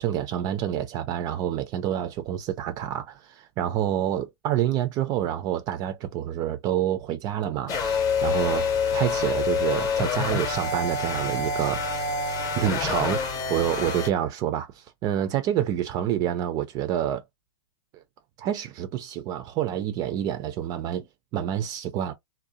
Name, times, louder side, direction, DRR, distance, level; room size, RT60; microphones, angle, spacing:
voice 1, 0.0-8.7 8.9-12.1 12.6-13.2 13.5-17.2 17.9-18.0 18.4-21.1 21.3-22.1, right 11 dB, 25° right, 0.3 m, -28 dB
sound 1, 7.7-14.1, left 5 dB, 25° left, 0.7 m, -27 dB
2.6 x 2.0 x 2.7 m
hypercardioid pair, 120°, 15 cm